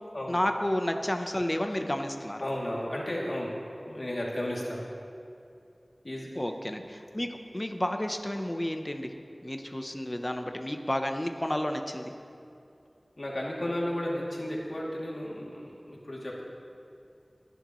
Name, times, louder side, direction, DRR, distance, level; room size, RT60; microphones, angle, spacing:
voice 1, 0.3-2.4 6.4-9.1 9.4-12.1, left 1 dB, 30° left, 5 dB, 0.9 m, -31 dB
voice 2, 2.4-3.5 3.9-4.8 6.0-6.3 13.2-16.4, left 1 dB, 65° left, -4 dB, 2.7 m, -33 dB
22.0 x 11.0 x 3.1 m, 2.5 s
wide cardioid pair, 40°, 0 cm